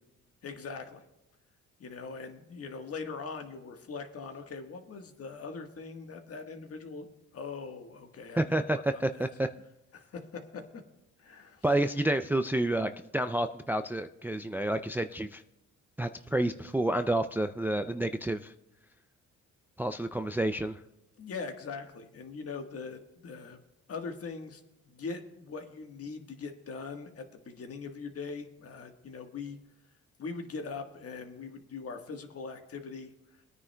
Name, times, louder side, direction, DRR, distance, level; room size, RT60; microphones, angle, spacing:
voice 1, 0.4-1.0 1.8-7.1 7.3-9.3 9.9-10.8 11.2-11.6 21.2-23.6 23.9-29.6 30.2-33.1, left 4 dB, 50° left, 5 dB, 1.5 m, -41 dB
voice 2, 8.4-9.5 11.6-15.4 16.0-18.5 19.8-20.8, right 1 dB, 5° right, 9 dB, 0.3 m, -29 dB
22.5 x 9.6 x 2.3 m, 0.93 s
cardioid pair, 90°, 30 cm